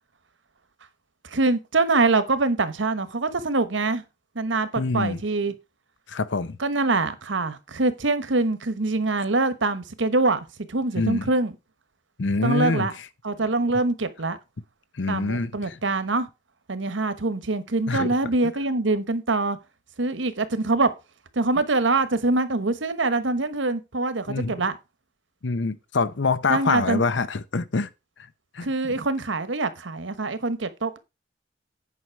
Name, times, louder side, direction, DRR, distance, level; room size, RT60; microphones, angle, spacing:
voice 1, 1.2-4.0 4.3-5.5 6.6-11.5 12.4-12.9 13.2-14.4 15.1-16.3 16.7-19.6 20.0-20.9 21.3-24.8 26.5-27.0 28.6-31.0, right 3 dB, 85° right, 1.2 m, -24 dB
voice 2, 4.8-5.2 6.1-6.6 11.0-11.2 12.2-12.9 15.0-15.5 17.9-18.1 24.3-24.6 25.4-27.9 28.5-28.7, left 4 dB, 75° left, 0.7 m, -25 dB
9.5 x 5.7 x 4.6 m
head